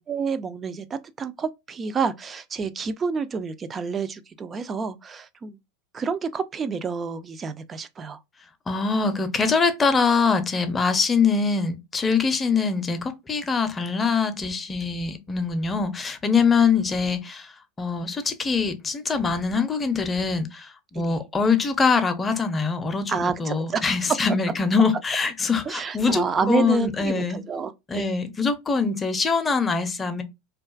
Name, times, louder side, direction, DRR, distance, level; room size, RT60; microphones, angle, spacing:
voice 1, 0.0-5.6 5.9-8.2 20.9-21.2 23.1-24.0 25.6-28.2, right 5 dB, 25° right, 0.3 m, -29 dB
voice 2, 8.7-17.5 17.8-27.4 27.9-30.2, left 5 dB, 20° left, 0.5 m, -23 dB
2.4 x 2.3 x 2.3 m
hypercardioid pair, 95°, 0 cm